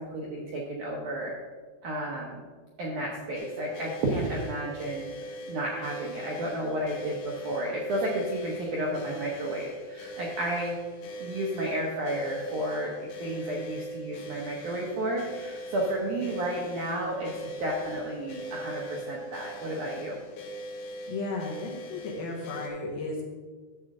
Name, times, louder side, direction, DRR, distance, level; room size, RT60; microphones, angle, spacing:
voice 1, 0.0-1.3 1.8-2.4 2.8-10.7 11.2-20.2, right 1 dB, 75° right, -2 dB, 1.9 m, -32 dB
sound 1, 3.3-22.7, right 1 dB, 85° left, 3.6 m, -41 dB
voice 2, 21.1-23.2, left 3 dB, 70° left, -1 dB, 2.8 m, -34 dB
12.0 x 7.3 x 3.7 m, 1.5 s
omnidirectional pair, 5.0 m